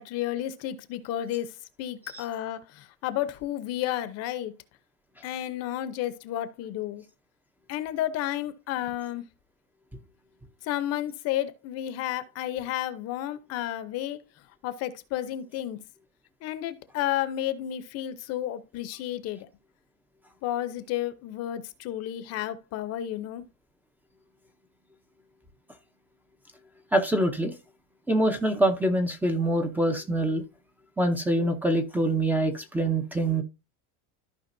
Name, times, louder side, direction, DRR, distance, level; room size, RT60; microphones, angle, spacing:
voice 1, 0.0-1.5 1.8-4.5 5.2-7.0 7.7-9.2 10.6-14.2 14.6-15.8 16.4-19.5 20.4-23.4, left 12 dB, 45° left, 0.8 m, -32 dB
voice 2, 26.9-27.5 28.1-30.4 31.0-33.4, right 1 dB, 5° right, 0.6 m, -25 dB
14.0 x 5.0 x 2.6 m
cardioid pair, 165°, 36 cm